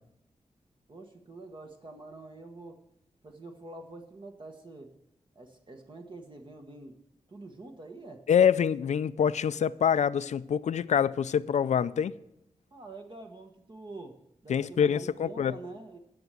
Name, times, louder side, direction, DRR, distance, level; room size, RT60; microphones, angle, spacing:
voice 1, 0.9-2.8 3.2-4.9 5.3-7.0 7.3-8.2 12.7-16.0, right 2 dB, 45° right, 1.3 m, -46 dB
voice 2, 8.3-12.1 14.5-15.6, left 8 dB, 80° left, 0.4 m, -25 dB
10.5 x 6.8 x 7.6 m
cardioid pair, 70°, 12 cm